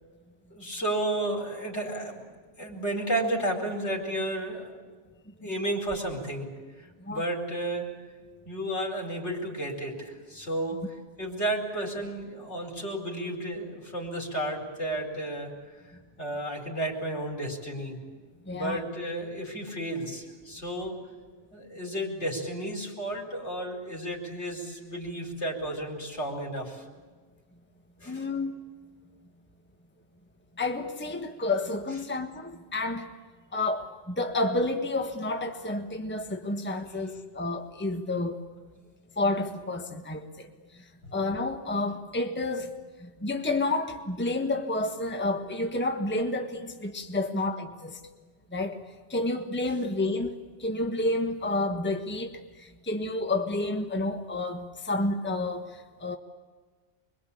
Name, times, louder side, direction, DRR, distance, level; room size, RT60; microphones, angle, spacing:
voice 1, 0.5-2.3 2.6-4.7 5.4-6.5 6.8-7.9 8.4-15.9 16.2-18.0 18.5-21.0 21.5-26.8 28.0-28.2, right 1 dB, 70° left, 1 dB, 5.0 m, -32 dB
voice 2, 18.5-18.8 28.1-28.6 30.6-33.1 33.5-38.4 39.2-40.5 41.1-42.7 43.0-48.0 48.5-48.8 49.1-56.2, left 2 dB, 10° left, 5 dB, 1.4 m, -30 dB
25.5 x 23.0 x 8.6 m, 1.4 s
omnidirectional pair, 1.2 m